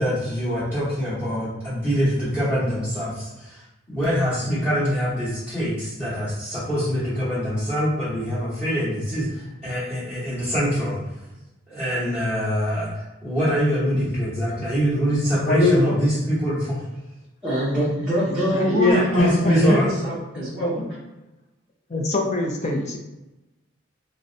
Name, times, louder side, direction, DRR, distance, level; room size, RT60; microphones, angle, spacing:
voice 1, 0.0-11.0 11.7-16.8 18.9-19.9, equal, 10° left, -15 dB, 1.0 m, -24 dB
voice 2, 15.3-16.0 18.2-20.0 20.4-20.7 21.9-23.0, left 2 dB, 35° left, 1 dB, 0.5 m, -23 dB
voice 3, 17.4-20.8, equal, 5° right, -11 dB, 0.6 m, -25 dB
3.8 x 2.1 x 2.6 m, 1.0 s
head